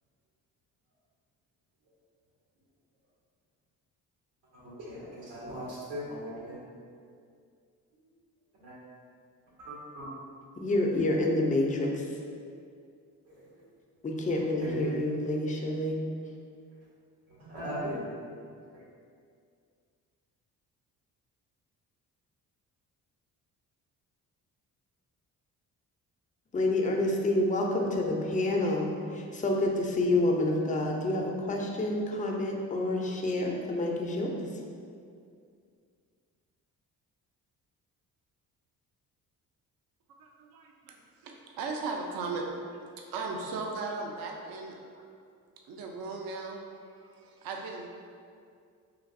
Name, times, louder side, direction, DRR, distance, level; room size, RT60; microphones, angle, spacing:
voice 1, 4.5-6.6 8.6-8.8 9.6-10.1 13.3-13.6 14.6-15.0 17.3-18.0 18.7-18.8, right 1 dB, 75° right, -6 dB, 1.0 m, -39 dB
voice 2, 10.6-12.0 14.0-16.0 26.5-34.5, left 1 dB, 20° left, 1 dB, 0.4 m, -28 dB
voice 3, 40.2-41.0 41.2-42.5 42.7-45.1 45.7-46.6 47.0-47.9, right 3 dB, 55° right, 1 dB, 0.5 m, -37 dB
3.2 x 2.5 x 2.5 m, 2.3 s
hypercardioid pair, 50°, 44 cm